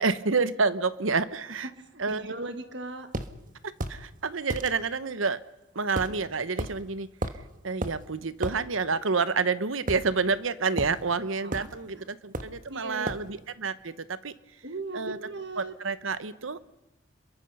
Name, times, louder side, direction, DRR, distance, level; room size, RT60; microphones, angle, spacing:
voice 1, 0.0-1.7 2.0-2.3 3.9-5.4 5.7-7.1 7.6-14.3 14.9-15.2 15.6-16.7, right 4 dB, 85° right, 14 dB, 1.0 m, -29 dB
voice 2, 1.8-3.1 11.4-11.7 11.9-12.0 12.7-13.1 14.6-15.7, right 2 dB, 60° right, 8 dB, 1.6 m, -38 dB
sound 1, 3.1-3.3 3.8-4.0 4.5-4.7 6.0-6.2 6.6-6.7 7.2-7.4 7.8-8.0 8.4-8.6 9.9-10.4 10.8-11.0 11.5-11.7 12.3-12.6 13.1-13.3, right 1 dB, 40° right, 1.3 m, -32 dB
28.5 x 22.5 x 5.5 m, 0.99 s
head